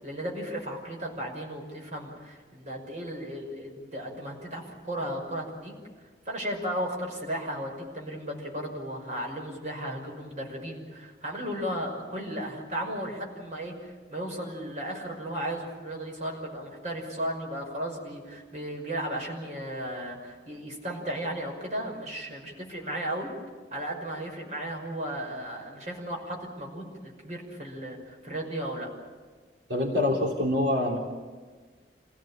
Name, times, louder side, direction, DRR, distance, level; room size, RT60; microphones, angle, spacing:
voice 1, 0.0-5.7 6.3-23.3 23.7-28.9, right 1 dB, 40° right, 0 dB, 6.0 m, -35 dB
voice 2, 29.7-31.0, left 1 dB, 90° right, -1 dB, 3.5 m, -25 dB
27.5 x 17.5 x 8.9 m, 1.4 s
head